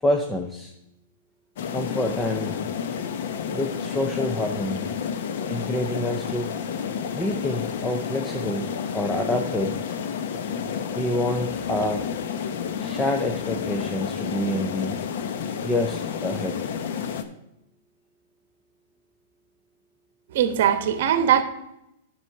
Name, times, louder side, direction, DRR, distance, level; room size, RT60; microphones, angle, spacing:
voice 1, 0.0-0.7 1.7-2.6 3.5-4.9 5.5-6.6 7.1-8.7 8.9-9.8 10.9-12.1 12.8-15.0 15.6-16.6, left 1 dB, 10° left, 0.6 m, -27 dB
sound 1, 1.6-17.2, left 7 dB, 65° left, 0.9 m, -30 dB
voice 2, 20.3-21.4, right 9 dB, 55° right, 1.1 m, -20 dB
11.5 x 5.8 x 4.6 m
supercardioid pair, 155°, 0 cm